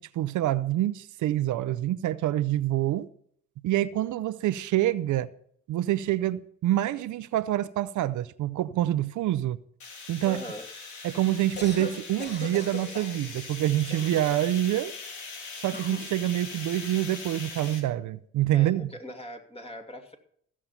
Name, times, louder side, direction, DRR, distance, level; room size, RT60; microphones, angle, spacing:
voice 1, 0.0-3.1 3.6-5.3 5.7-9.6 10.1-10.4 11.0-14.9 15.6-18.9, right 13 dB, 75° right, 0.7 m, -26 dB
sound 1, 9.8-17.8, left 4 dB, 70° left, 3.1 m, -41 dB
voice 2, 10.2-10.7 18.5-20.2, left 1 dB, 20° left, 2.5 m, -41 dB
Cough, 11.4-11.9 12.2-13.2 13.9-14.6 15.7-16.1, left 3 dB, 35° left, 3.2 m, -39 dB
15.5 x 7.4 x 5.7 m
cardioid pair, 90°, 30 cm